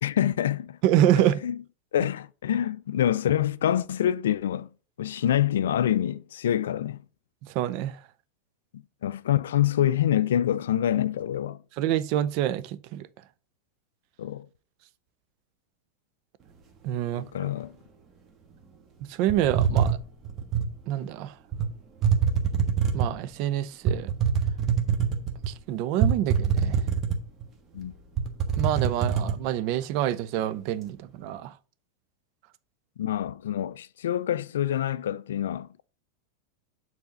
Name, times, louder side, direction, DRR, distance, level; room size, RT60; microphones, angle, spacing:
voice 1, 0.0-0.8 1.2-1.6 1.9-4.7 5.0-7.0 8.7-11.6 14.2-14.5 17.1-17.7 27.7-27.9 33.0-35.8, left 11 dB, 80° left, 0.3 m, -26 dB
voice 2, 0.8-1.4 7.5-8.0 11.8-13.1 16.8-17.3 19.1-20.0 20.9-21.3 22.9-24.1 25.5-26.8 28.6-31.5, right 12 dB, 55° right, 0.5 m, -26 dB
sound 1, 19.3-20.7 21.5-21.7 22.0-23.2 23.9-25.5 26.0-27.4 27.8-27.9 28.2-29.4, right 7 dB, 35° right, 1.3 m, -24 dB
7.0 x 4.1 x 3.8 m
hypercardioid pair, 105°, 0 cm